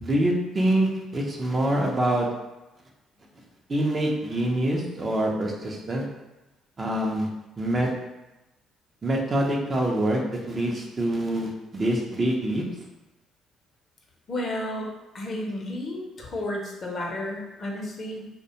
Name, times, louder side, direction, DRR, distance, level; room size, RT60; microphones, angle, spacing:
voice 1, 0.0-2.3 3.7-6.1 6.8-7.3 7.6-7.9 9.0-12.6, right 1 dB, 35° right, 0 dB, 0.5 m, -25 dB
voice 2, 14.3-14.9 15.1-18.3, left 1 dB, 50° left, 0 dB, 0.6 m, -32 dB
2.4 x 2.1 x 2.8 m, 0.99 s
hypercardioid pair, 60°, 0 cm